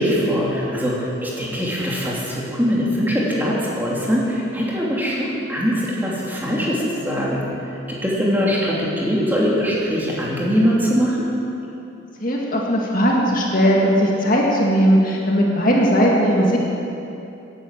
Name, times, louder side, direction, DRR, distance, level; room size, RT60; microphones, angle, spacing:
voice 1, 0.0-7.4 7.9-11.3, equal, 10° right, -5 dB, 2.8 m, -22 dB
voice 2, 12.2-16.6, equal, 45° left, -2 dB, 2.0 m, -18 dB
17.0 x 10.5 x 7.5 m, 2.9 s
head